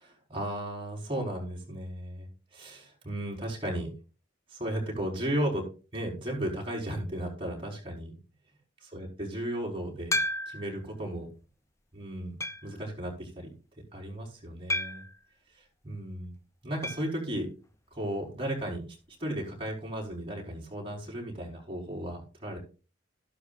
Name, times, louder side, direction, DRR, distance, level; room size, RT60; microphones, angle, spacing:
voice 1, 0.3-3.9 4.5-5.7 5.9-8.2 8.8-10.1 10.5-11.3 11.9-12.4 12.6-13.5 13.9-15.0 15.8-16.3 16.6-17.5 17.9-22.6, right 1 dB, 30° right, -1 dB, 5.0 m, -35 dB
sound 1, 10.1-10.8 11.4-11.5 12.4-12.8 14.7-15.2 16.8-17.1 17.4-17.5 17.7-17.8 19.9-20.0, left 1 dB, 15° left, 0.6 m, -32 dB
13.5 x 12.0 x 2.6 m, 0.33 s
head